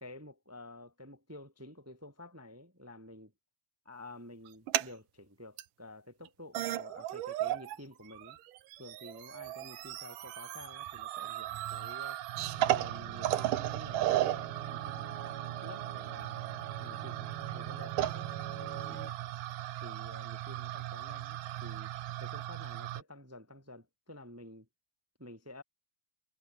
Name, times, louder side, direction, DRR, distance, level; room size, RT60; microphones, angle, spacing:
voice 1, 0.0-3.3 3.8-8.4 8.8-12.2 12.6-15.2 15.6-16.4 16.8-18.3 18.6-19.3 19.8-21.9 22.2-24.7 25.2-25.6, left 1 dB, 15° right, 0.6 m, -51 dB
sound 1, 4.5-4.9 5.6-5.7 6.3-6.4 6.5-7.8 8.1-23.0, right 14 dB, 80° right, 2.7 m, -36 dB
sound 2, 12.4-19.1, right 8 dB, 50° right, 2.1 m, -45 dB
omnidirectional pair, 3.7 m